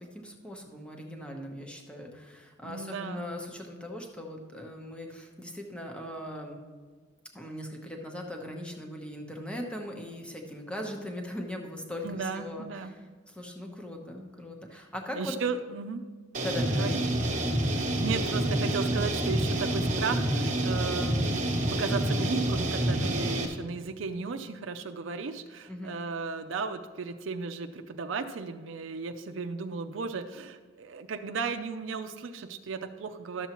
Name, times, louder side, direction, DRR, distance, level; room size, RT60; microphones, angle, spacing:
voice 1, 0.0-6.6 7.3-15.3 16.4-16.9 25.7-25.9, left 1 dB, 5° left, 1 dB, 0.9 m, -40 dB
voice 2, 2.6-3.3 12.0-12.9 15.1-16.0 16.7-17.0 17.7-21.4 21.8-33.5, right 5 dB, 85° right, 6 dB, 0.5 m, -35 dB
sound 1, 16.3-23.5, right 1 dB, 40° right, 1.0 m, -28 dB
12.0 x 7.0 x 2.9 m, 1.5 s
head